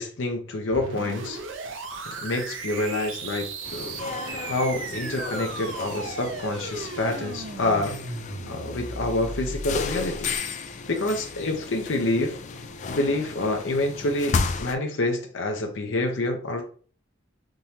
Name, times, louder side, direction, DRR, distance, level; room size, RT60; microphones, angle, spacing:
voice 1, 0.0-1.4 2.1-8.0 8.5-10.4 10.9-12.4 12.9-16.6, left 2 dB, 75° left, 3 dB, 0.7 m, -27 dB
sound 1, 0.7-10.4, right 3 dB, 80° right, 0.6 m, -36 dB
sound 2, 3.6-14.7, left 4 dB, 40° left, 0.4 m, -34 dB
3.6 x 2.9 x 2.8 m, 0.42 s
head